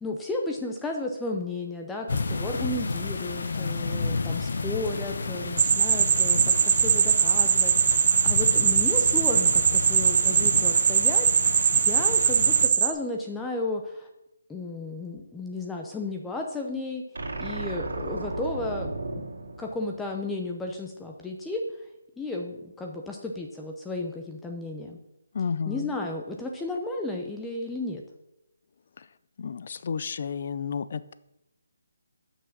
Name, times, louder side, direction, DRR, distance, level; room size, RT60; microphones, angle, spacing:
voice 1, 0.0-14.1 14.5-17.0 17.4-19.2 19.6-21.8 22.2-25.0 25.7-28.0, left 2 dB, 5° left, 1 dB, 0.6 m, -33 dB
sound 1, 2.1-12.7, left 3 dB, 65° left, 0.9 m, -32 dB
voice 2, 3.4-3.9 25.3-25.9 29.0-29.1 29.4-31.1, left 6 dB, 50° left, 15 dB, 0.4 m, -32 dB
sound 2, 5.6-12.9, right 7 dB, 45° right, 0.7 m, -21 dB
sound 3, 17.1-20.5, right 2 dB, 85° right, 2.1 m, -35 dB
6.9 x 5.9 x 6.1 m, 0.87 s
hypercardioid pair, 160°, 0 cm